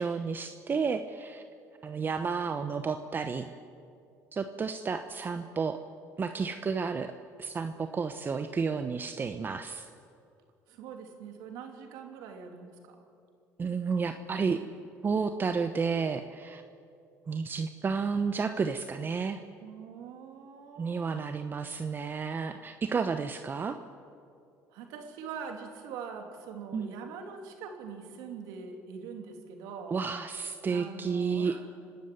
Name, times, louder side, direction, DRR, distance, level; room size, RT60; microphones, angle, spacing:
voice 1, 0.0-1.4 1.8-3.5 4.3-5.8 6.2-7.1 7.4-9.9 13.6-14.6 15.0-16.6 17.3-19.4 20.8-23.8 26.7-26.9 29.9-31.5, right 5 dB, 35° right, 8 dB, 1.0 m, -31 dB
voice 2, 10.7-13.1 19.6-21.9 24.7-29.9 30.7-31.7, right 6 dB, 85° right, 4 dB, 3.0 m, -43 dB
27.0 x 12.5 x 9.4 m, 2.5 s
supercardioid pair, 90°, 6 cm